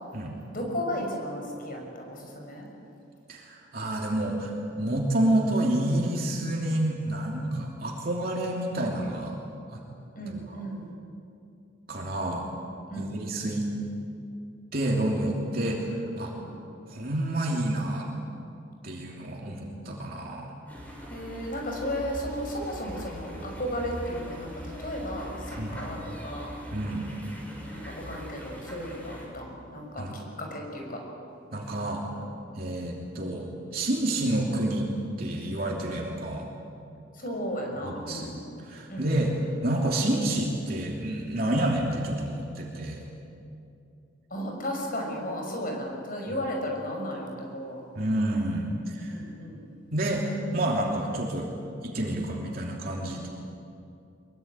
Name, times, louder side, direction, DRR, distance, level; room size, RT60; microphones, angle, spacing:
voice 1, 0.5-2.7 10.1-10.9 12.9-13.2 16.3-16.5 21.1-26.5 27.7-31.0 37.1-38.4 38.9-39.4 44.3-47.8 49.1-49.6, equal, 45° left, 1 dB, 6.3 m, -34 dB
voice 2, 3.3-9.4 9.7-9.8 10.3-10.6 11.9-12.5 13.0-13.7 14.7-16.3 16.9-18.1 18.8-20.5 25.6-25.8 26.7-27.1 30.0-30.1 31.5-32.0 32.5-34.9 35.2-36.5 37.8-39.3 39.6-43.0 47.9-49.2 49.9-51.5 51.8-53.3, right 1 dB, 50° right, -2 dB, 3.0 m, -29 dB
sound 1, 20.7-29.3, equal, 10° left, 5.9 m, -41 dB
23.0 x 22.5 x 9.0 m, 2.6 s
head